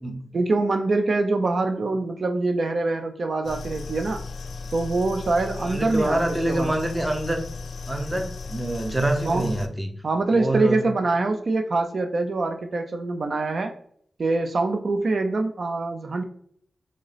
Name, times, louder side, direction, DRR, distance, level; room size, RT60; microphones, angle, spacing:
voice 1, 0.3-4.2 4.7-6.7 9.3-9.5 10.0-13.7 14.2-16.2, right 3 dB, 55° right, 5 dB, 0.4 m, -24 dB
sound 1, 3.4-9.7, left 4 dB, 85° left, 0.4 m, -36 dB
voice 2, 5.7-7.5 7.9-9.9 10.3-10.8, right 1 dB, 15° right, 4 dB, 0.6 m, -26 dB
3.6 x 2.7 x 3.2 m, 0.66 s
wide cardioid pair, 105°, 0 cm